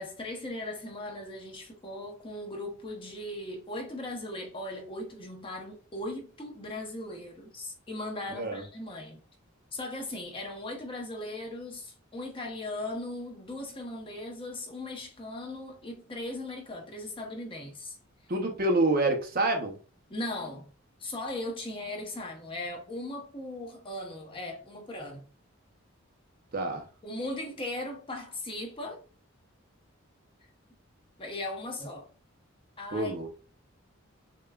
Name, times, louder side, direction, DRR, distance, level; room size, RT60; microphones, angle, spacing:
voice 1, 0.0-9.2 9.7-18.0 20.1-20.7 21.0-25.3 27.0-29.0 31.2-32.1 32.8-33.3, left 1 dB, 25° left, 0.9 m, -38 dB
voice 2, 8.3-8.6 18.3-19.8 26.5-26.8 32.9-33.3, right 2 dB, 45° right, 0.7 m, -27 dB
6.7 x 2.3 x 2.3 m
head